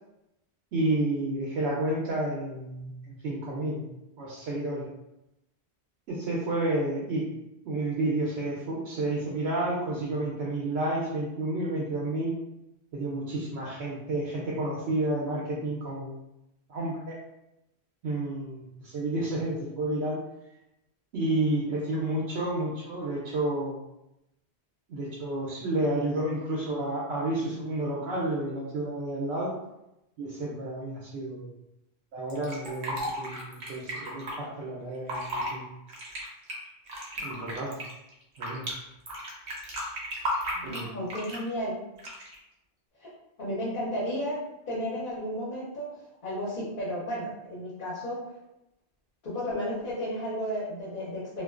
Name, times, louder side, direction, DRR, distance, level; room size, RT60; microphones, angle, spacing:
voice 1, 0.7-3.8 4.2-4.9 6.1-7.3 7.6-12.3 12.9-16.2 16.7-17.2 18.0-20.2 21.1-23.8 24.9-29.5 30.2-31.5 32.1-35.6 37.2-37.8 38.4-38.7 40.6-40.9, right 2 dB, 85° right, -5 dB, 0.9 m, -30 dB
Fill (with liquid), 32.3-34.3 34.9-35.5 35.9-38.7 39.1-41.5 42.0-42.4, equal, 50° right, 0.7 m, -34 dB
voice 2, 40.5-41.7 43.0-43.1 43.4-44.4 44.7-45.9 46.2-48.2 49.2-51.4, equal, 55° left, -8 dB, 0.9 m, -33 dB
2.4 x 2.2 x 2.3 m, 0.89 s
omnidirectional pair, 1.1 m